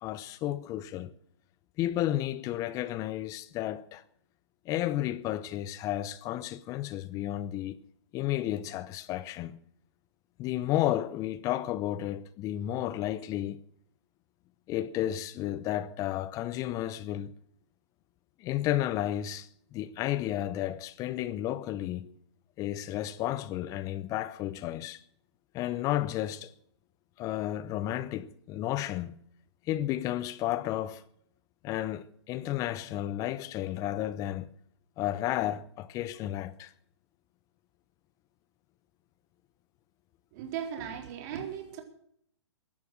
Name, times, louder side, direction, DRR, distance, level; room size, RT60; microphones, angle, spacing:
voice 1, 0.0-1.1 1.8-4.0 4.7-7.8 8.1-9.6 10.4-13.6 14.7-17.3 18.4-22.1 22.6-25.0 25.5-26.5 27.2-29.1 29.7-31.0 31.6-34.5 35.0-36.7, left 13 dB, 20° left, 0.7 m, -32 dB
voice 2, 40.3-41.8, right 8 dB, 40° right, 3.9 m, -37 dB
16.0 x 11.5 x 6.4 m
hypercardioid pair, 135°, 15 cm